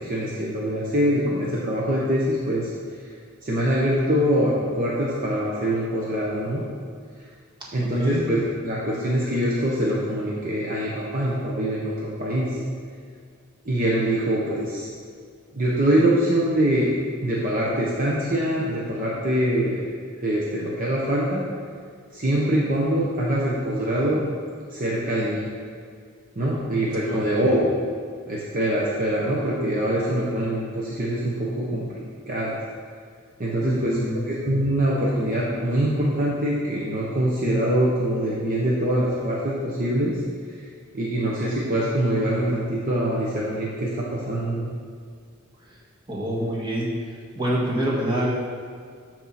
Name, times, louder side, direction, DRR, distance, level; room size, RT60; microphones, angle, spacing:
voice 1, 0.0-2.7 3.4-6.6 7.7-12.5 13.6-14.9 15.5-16.9 17.2-19.8 20.2-21.4 22.1-24.2 24.7-25.5 26.4-27.7 28.3-31.9 32.3-32.5 33.4-34.0 34.3-40.2 40.9-44.7, right 1 dB, 40° right, -5 dB, 1.0 m, -24 dB
voice 2, 7.8-8.2 27.1-27.4 33.6-34.3 46.1-46.9 47.3-48.3, right 1 dB, 20° right, -5 dB, 1.7 m, -26 dB
12.0 x 4.5 x 4.2 m, 2.1 s
head